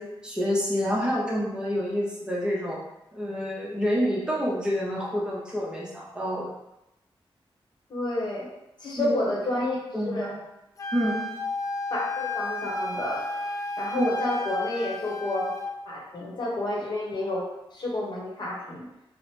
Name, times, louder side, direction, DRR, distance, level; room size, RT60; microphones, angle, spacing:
voice 1, 0.0-2.8 3.1-6.5 9.0-9.2 9.9-10.4 10.9-11.2 13.9-14.1, equal, 10° right, -5 dB, 0.7 m, -28 dB
voice 2, 7.9-8.5 8.8-9.8 10.0-10.3 11.9-13.3 13.8-15.5 15.9-18.8, left 1 dB, 50° left, -4 dB, 0.9 m, -30 dB
Wind instrument woodwind instrument, 10.8-15.8, left 2 dB, 35° left, 0.3 m, -32 dB
3.0 x 2.0 x 3.0 m, 0.88 s
cardioid pair, 80°, 10 cm